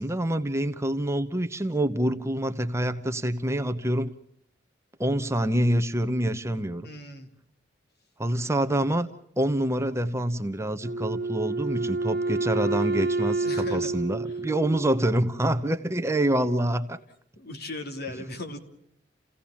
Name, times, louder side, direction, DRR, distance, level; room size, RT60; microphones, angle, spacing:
voice 1, 0.0-4.1 5.0-6.9 8.2-9.1 9.4-17.0, right 1 dB, 15° right, 9 dB, 1.0 m, -26 dB
voice 2, 6.8-7.3 13.4-13.9 14.5-14.6 17.4-18.6, left 2 dB, 60° left, 6 dB, 3.1 m, -37 dB
Wind instrument woodwind instrument, 10.8-15.3, right 3 dB, 60° right, 1.4 m, -29 dB
29.5 x 17.0 x 7.2 m, 0.74 s
head